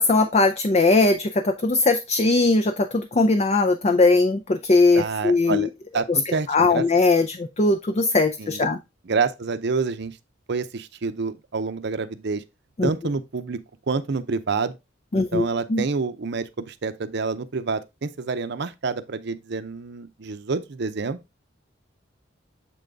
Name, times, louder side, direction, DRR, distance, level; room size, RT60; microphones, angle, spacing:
voice 1, 0.0-5.7 6.1-6.2 6.5-8.8 12.8-12.9 15.1-15.8, left 3 dB, 35° left, 0.5 m, -20 dB
voice 2, 4.9-6.8 8.4-8.6 9.1-10.2 10.5-12.4 12.8-13.6 13.9-14.8 15.2-21.2, right 4 dB, 60° right, 0.6 m, -28 dB
7.6 x 3.9 x 3.4 m
head